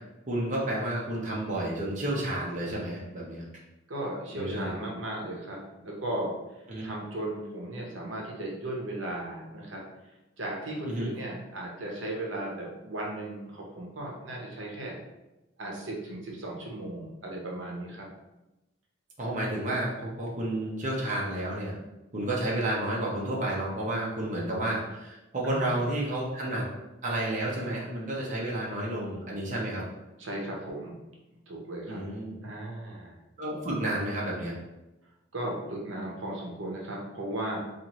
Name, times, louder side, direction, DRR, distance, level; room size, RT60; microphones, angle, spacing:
voice 1, 0.0-3.4 4.3-4.7 6.7-6.9 10.8-11.1 19.2-21.8 22.1-26.7 27.0-29.8 31.9-32.4 33.4-34.5, right 1 dB, 40° right, -4 dB, 0.7 m, -31 dB
voice 2, 3.9-5.6 5.8-6.3 6.8-9.8 10.4-15.0 15.6-18.1 25.4-25.9 30.2-30.9 31.5-32.0 32.4-33.2 35.3-37.6, right 1 dB, 70° right, -2 dB, 0.8 m, -36 dB
4.2 x 2.5 x 3.0 m, 0.98 s
head